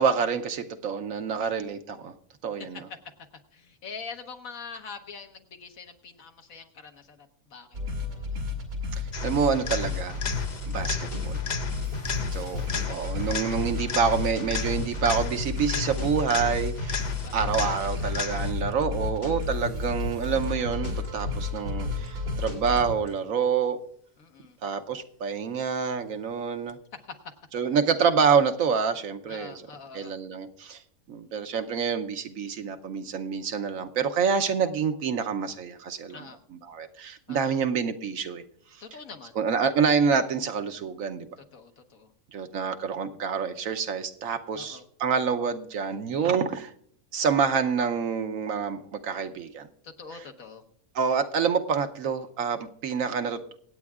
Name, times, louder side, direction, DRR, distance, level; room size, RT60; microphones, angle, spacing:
voice 1, 0.0-2.1 2.4-2.8 9.2-10.2 10.7-11.4 12.3-17.1 17.3-23.8 24.6-26.8 27.5-29.6 29.9-30.8 31.1-36.2 36.7-38.4 39.4-41.3 42.3-46.7 47.1-49.7 50.9-53.4, right 6 dB, 70° right, 7 dB, 1.1 m, -27 dB
voice 2, 2.6-3.0 3.5-7.8 8.1-8.4 11.9-12.9 17.2-18.1 18.9-19.7 24.2-24.6 26.9-27.3 29.3-30.2 36.1-36.4 37.3-37.6 38.8-39.4 41.4-42.1 44.5-44.8 49.8-50.6, left 5 dB, 70° left, 5 dB, 1.5 m, -45 dB
sound 1, 7.7-22.8, left 4 dB, 85° right, 3.0 m, -32 dB
sound 2, 9.1-18.7 26.7-26.8, left 6 dB, 45° left, 0.6 m, -35 dB
sound 3, 10.3-23.1, left 2 dB, 85° left, 4.3 m, -35 dB
26.0 x 8.7 x 2.4 m, 0.63 s
omnidirectional pair, 1.5 m